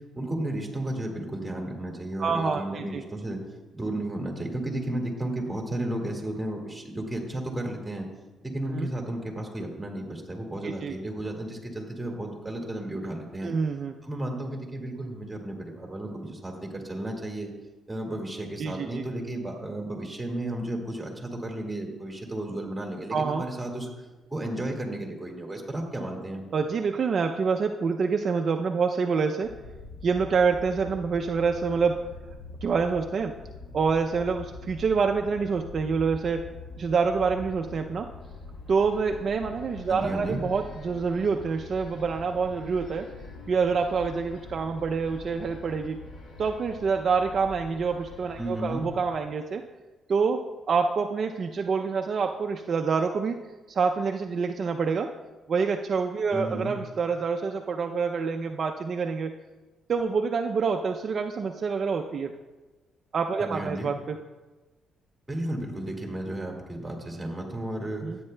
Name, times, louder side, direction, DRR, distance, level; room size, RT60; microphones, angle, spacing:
voice 1, 0.1-3.4 3.7-8.1 8.4-13.5 14.0-17.5 17.9-23.9 24.3-26.4 39.9-40.4 48.4-48.8 56.3-56.8 63.4-63.9 65.3-68.2, right 1 dB, 10° right, 0 dB, 2.0 m, -33 dB
voice 2, 2.2-3.0 8.7-8.9 10.6-10.9 13.4-13.9 18.6-19.0 23.1-23.4 26.5-29.5 30.0-32.1 32.6-33.4 33.7-36.5 36.8-38.1 38.7-43.1 43.5-46.0 46.4-49.6 50.1-53.4 53.7-55.1 55.5-59.3 59.9-62.3 63.1-64.2 68.0-68.2, right 5 dB, 50° right, 4 dB, 0.4 m, -27 dB
sound 1, 29.4-49.2, left 3 dB, 65° left, 1.3 m, -44 dB
13.0 x 8.7 x 2.2 m, 1.2 s
cardioid pair, 90°, 0 cm